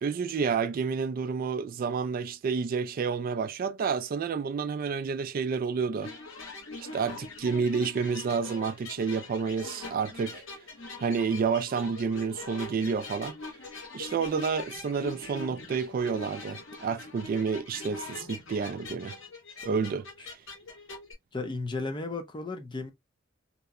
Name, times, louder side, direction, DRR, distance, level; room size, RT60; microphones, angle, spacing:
voice 1, 0.0-6.1 6.8-10.4 11.0-13.4 13.9-19.2 19.6-20.4, right 5 dB, 45° right, 0.3 m, -30 dB
sound 1, 6.0-21.1, left 3 dB, 85° left, 1.0 m, -43 dB
voice 2, 21.3-22.9, left 3 dB, 25° left, 0.5 m, -34 dB
2.8 x 2.1 x 2.3 m
head